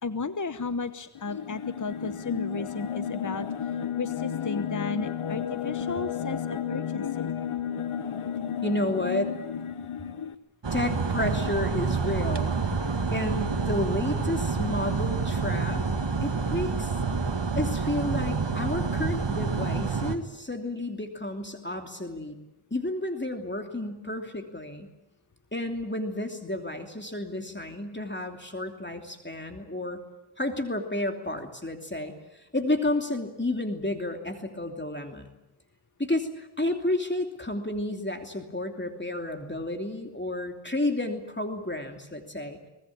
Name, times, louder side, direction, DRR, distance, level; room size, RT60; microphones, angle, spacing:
voice 1, 0.0-3.5 4.0-7.3, left 4 dB, 35° left, 11 dB, 1.1 m, -34 dB
sound 1, 1.1-10.3, left 8 dB, 90° left, 1.0 m, -32 dB
voice 2, 8.6-9.4 10.7-12.6 13.1-15.8 16.2-17.0 17.6-22.4 22.7-24.9 25.5-30.0 30.4-35.3 36.0-42.6, left 1 dB, 20° left, 4 dB, 2.9 m, -31 dB
sound 2, 10.6-20.2, right 4 dB, 60° right, 2.1 m, -28 dB
24.0 x 19.5 x 8.7 m, 0.96 s
cardioid pair, 40°, 49 cm